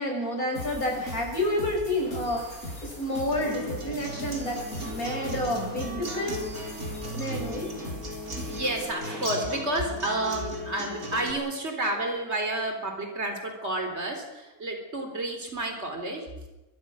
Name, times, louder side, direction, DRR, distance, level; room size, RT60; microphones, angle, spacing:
voice 1, 0.0-2.4 2.8-6.4 7.2-7.8, left 1 dB, 80° left, 0 dB, 7.4 m, -29 dB
sound 1, 0.5-8.9, left 1 dB, 50° left, 7.4 m, -40 dB
Acoustic guitar, 3.3-11.3, right 1 dB, 75° right, 4.5 m, -37 dB
voice 2, 8.1-16.5, right 1 dB, 50° right, 4 dB, 4.2 m, -31 dB
23.5 x 22.0 x 6.4 m, 1.0 s
omnidirectional pair, 1.5 m